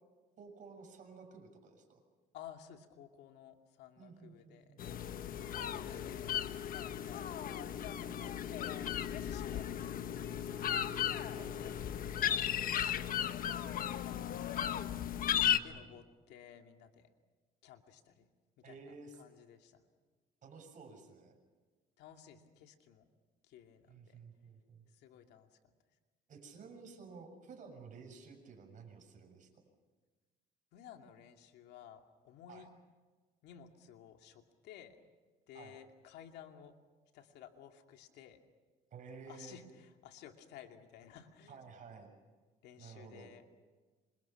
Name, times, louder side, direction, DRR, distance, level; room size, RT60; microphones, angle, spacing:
voice 1, 0.4-2.0 4.0-5.0 9.5-9.7 11.4-11.6 15.4-15.9 18.6-19.2 20.4-21.4 23.9-24.9 26.3-29.6 32.5-32.7 35.5-35.8 38.9-39.6 41.5-42.1 42.8-43.3, right 5 dB, 50° right, 3 dB, 7.2 m, -53 dB
voice 2, 2.3-4.7 5.4-6.3 6.7-7.2 7.7-8.9 9.2-10.8 11.4-12.5 12.8-13.5 14.0-14.8 15.6-17.1 17.6-18.3 18.6-19.8 22.0-23.0 23.4-24.2 24.9-25.6 30.7-32.7 33.4-35.0 35.5-36.7 37.1-38.4 39.3-41.6 42.6-43.4, left 9 dB, 80° left, 5 dB, 2.5 m, -55 dB
sound 1, 4.8-15.6, left 10 dB, 55° left, 1.2 m, -36 dB
28.0 x 26.0 x 5.9 m, 1.4 s
cardioid pair, 110°, 17 cm